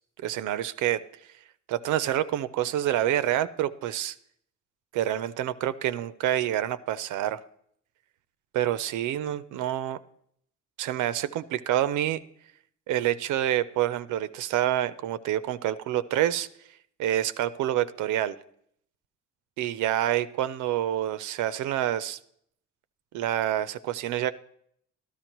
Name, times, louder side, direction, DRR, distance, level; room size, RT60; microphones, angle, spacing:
voice 1, 0.2-1.0 1.7-4.2 4.9-7.4 8.5-10.0 10.8-12.2 12.9-16.5 17.0-18.4 19.6-22.2 23.1-24.3, right 12 dB, 80° right, 14 dB, 0.5 m, -27 dB
13.0 x 12.5 x 3.0 m, 0.68 s
cardioid pair, 90°, 30 cm